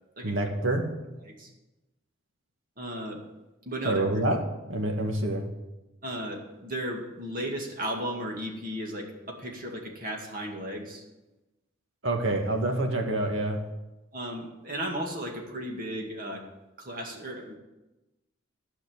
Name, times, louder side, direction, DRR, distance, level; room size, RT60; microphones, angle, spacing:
voice 1, 0.2-0.9 3.8-4.4 4.7-5.5 12.0-13.6, right 2 dB, 75° right, 2 dB, 1.8 m, -27 dB
voice 2, 2.8-3.2 3.7-4.2 6.0-11.0 14.1-16.5 16.8-17.6, equal, 45° right, 1 dB, 2.1 m, -35 dB
12.5 x 5.8 x 8.7 m, 1.0 s
head